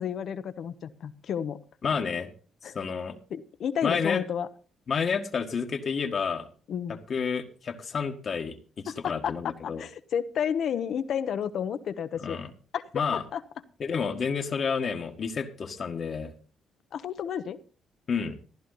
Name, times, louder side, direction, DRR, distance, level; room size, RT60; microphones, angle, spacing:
voice 1, 0.0-1.6 2.6-2.7 3.3-4.5 6.7-7.0 8.9-12.4 12.7-12.8 13.1-13.4 16.9-17.6, left 8 dB, 65° left, 12 dB, 1.1 m, -31 dB
voice 2, 1.8-2.3 2.6-3.2 3.8-4.2 4.9-6.5 7.1-9.8 12.2-12.5 12.9-13.2 13.8-16.3 18.1-18.4, left 6 dB, 50° left, 5 dB, 1.7 m, -30 dB
14.5 x 11.0 x 4.1 m, 0.37 s
cardioid pair, 90°, 0 cm